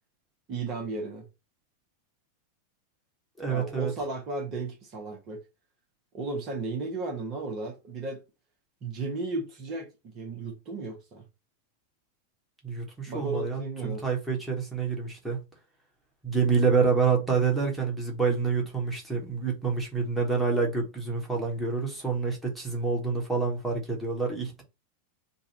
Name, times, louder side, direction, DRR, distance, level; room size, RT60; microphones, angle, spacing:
voice 1, 0.5-1.3 3.5-5.4 6.1-8.2 8.8-11.2 13.1-14.0, right 3 dB, 35° right, 1.1 m, -34 dB
voice 2, 3.4-3.9 12.6-15.4 16.2-24.6, right 5 dB, 5° right, 1.4 m, -27 dB
4.1 x 2.4 x 4.2 m
figure-of-eight pair, 90°, 0 cm